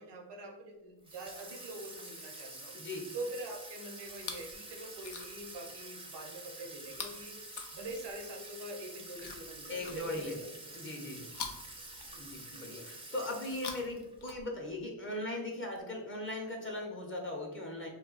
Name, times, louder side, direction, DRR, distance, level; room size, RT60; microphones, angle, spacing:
voice 1, 0.0-2.8 3.1-7.4 7.7-10.3 12.1-12.7, right 2 dB, 75° right, 1 dB, 0.8 m, -44 dB
Water tap faucet / Sink (filling or washing), 1.0-14.2, right 2 dB, 15° right, 0.5 m, -48 dB
voice 2, 2.7-3.1 9.7-10.4 10.7-11.3 12.2-17.9, left 1 dB, 30° left, 0 dB, 0.7 m, -39 dB
Chewing mastication, 4.1-4.6 4.9-5.5 6.9-8.3 9.1-10.4 11.3-12.6 13.4-14.8 15.8-15.9, left 6 dB, 70° left, 0.6 m, -46 dB
2.3 x 2.2 x 3.8 m, 0.95 s
cardioid pair, 65°, 41 cm